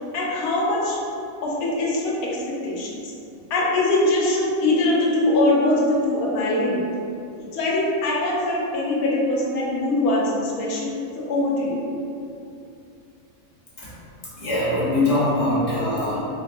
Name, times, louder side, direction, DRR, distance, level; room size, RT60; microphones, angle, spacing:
voice 1, 0.1-1.0 1.4-2.9 3.5-6.8 7.5-11.0 11.3-11.8, left 2 dB, 85° left, -4 dB, 1.2 m, -22 dB
voice 2, 14.3-16.2, left 1 dB, 30° left, -10 dB, 0.9 m, -22 dB
3.8 x 2.3 x 2.6 m, 2.6 s
omnidirectional pair, 1.5 m